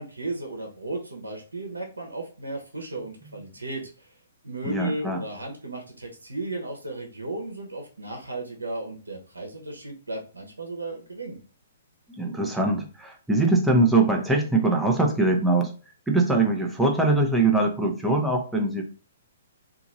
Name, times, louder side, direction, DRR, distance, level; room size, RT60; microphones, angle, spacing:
voice 1, 0.0-4.1 4.4-11.4, right 2 dB, 90° right, 2 dB, 0.9 m, -35 dB
voice 2, 4.6-5.2 12.1-15.7 16.1-18.8, right 2 dB, 5° right, 0 dB, 0.8 m, -22 dB
2.9 x 2.6 x 3.8 m, 0.37 s
hypercardioid pair, 125°, 0 cm